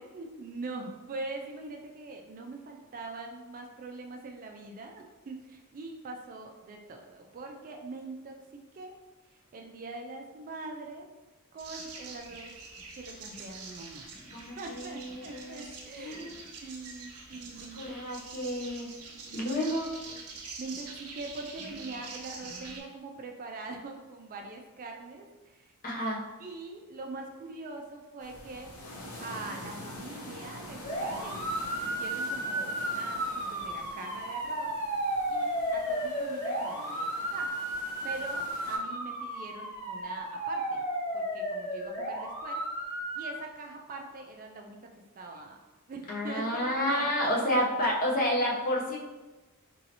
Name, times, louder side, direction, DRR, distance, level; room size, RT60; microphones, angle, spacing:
voice 1, 0.0-9.0 9.3-11.1 11.5-12.5 12.9-14.2 14.6-16.3 16.6-18.0 18.6-19.5 20.0-25.7 26.4-28.7 29.2-34.7 35.3-37.6 38.0-40.8 41.1-42.6 43.1-44.8 45.1-45.6 45.9-47.7, right 3 dB, 40° right, 2 dB, 0.3 m, -43 dB
sound 1, 11.6-22.8, right 4 dB, 75° right, 0.6 m, -45 dB
voice 2, 14.3-15.6 16.0-16.4 17.7-18.9 19.3-19.9 25.8-26.2 46.1-49.0, equal, 40° left, -2 dB, 0.6 m, -30 dB
sound 2, 28.2-38.8, left 1 dB, 90° left, 0.8 m, -46 dB
sound 3, 30.8-43.3, right 1 dB, 25° left, 1.3 m, -33 dB
3.0 x 2.7 x 2.7 m, 1.2 s
head